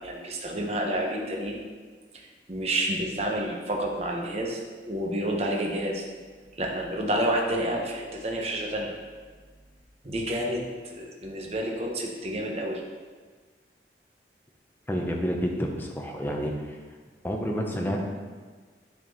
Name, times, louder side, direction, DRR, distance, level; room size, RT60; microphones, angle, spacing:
voice 1, 0.0-1.6 2.1-6.0 6.6-8.9 10.0-12.8, right 1 dB, 35° right, 0 dB, 0.9 m, -29 dB
voice 2, 14.9-16.8 17.2-18.0, equal, 10° left, 1 dB, 0.8 m, -29 dB
9.4 x 4.3 x 4.1 m, 1.5 s
head